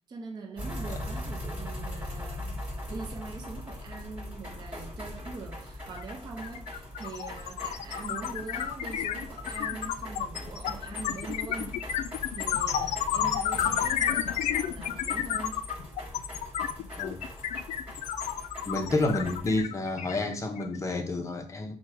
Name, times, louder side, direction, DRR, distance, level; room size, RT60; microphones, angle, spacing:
voice 1, 0.1-2.6 2.9-11.8 12.3-15.7, right 4 dB, 35° right, 0.6 m, -42 dB
sound 1, 0.6-19.6, left 1 dB, 10° right, 1.4 m, -41 dB
sound 2, 6.0-6.1 6.4-20.8, left 10 dB, 80° left, 0.4 m, -31 dB
voice 2, 18.7-21.7, left 2 dB, 25° left, 0.6 m, -29 dB
4.5 x 2.2 x 4.6 m
cardioid pair, 165°, 12 cm